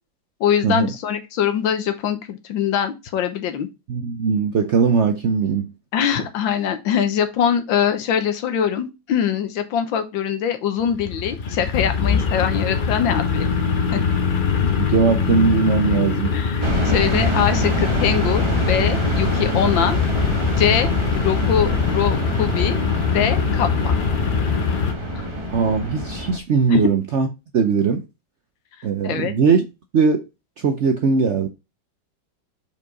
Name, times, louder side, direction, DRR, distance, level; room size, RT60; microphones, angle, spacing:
voice 1, 0.4-3.7 5.9-13.5 13.9-14.2 16.3-20.0 20.5-22.8 23.1-24.0 25.1-25.3 26.7-26.9 29.0-29.3, left 8 dB, 85° left, 1.7 m, -23 dB
voice 2, 3.9-5.7 14.6-16.3 25.5-27.3 27.5-28.0 28.8-29.6 29.9-30.2 30.6-31.5, right 5 dB, 70° right, 0.6 m, -19 dB
sound 1, 10.8-24.9, left 5 dB, 65° left, 0.5 m, -22 dB
sound 2, 16.6-26.4, equal, 20° right, 0.8 m, -25 dB
5.5 x 4.8 x 3.9 m
omnidirectional pair, 2.1 m